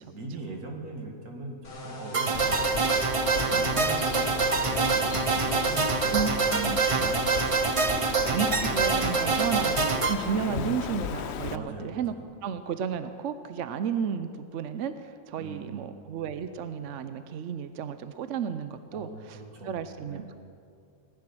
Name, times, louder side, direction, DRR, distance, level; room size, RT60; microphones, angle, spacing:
voice 1, 0.1-2.7 3.1-4.4 4.6-6.2 6.9-8.3 10.4-10.8 11.5-12.2 15.4-15.9 18.9-19.8 20.1-20.2, right 2 dB, 80° right, 1 dB, 2.5 m, -40 dB
sound 1, 1.6-7.2, left 1 dB, 85° left, 2.9 m, -40 dB
sound 2, 2.1-10.1, right 4 dB, 35° right, 0.5 m, -26 dB
Bird, 2.3-11.6, left 9 dB, 65° left, 0.7 m, -35 dB
voice 2, 6.1-7.2 8.2-12.1 12.4-19.4 19.6-20.4, right 7 dB, 65° right, 11 dB, 0.9 m, -33 dB
19.5 x 10.5 x 6.2 m, 2.3 s
omnidirectional pair, 1.5 m